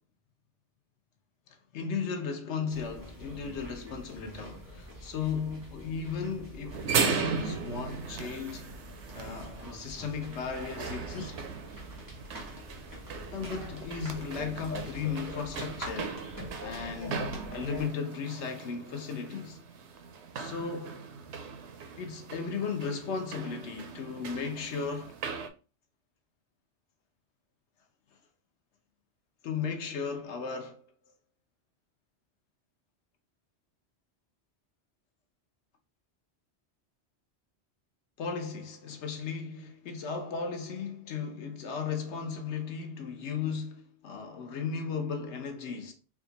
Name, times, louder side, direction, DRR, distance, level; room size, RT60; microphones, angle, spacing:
voice 1, 1.5-8.8 9.1-11.4 13.3-16.3 16.6-19.6 20.3-21.1 22.0-25.2 29.4-30.9 38.2-45.9, left 5 dB, 90° left, 1.1 m, -36 dB
sound 1, 2.7-17.9, equal, 20° right, 1.1 m, -45 dB
sound 2, 6.7-25.5, right 6 dB, 90° right, 0.9 m, -38 dB
3.5 x 2.3 x 3.8 m
omnidirectional pair, 1.1 m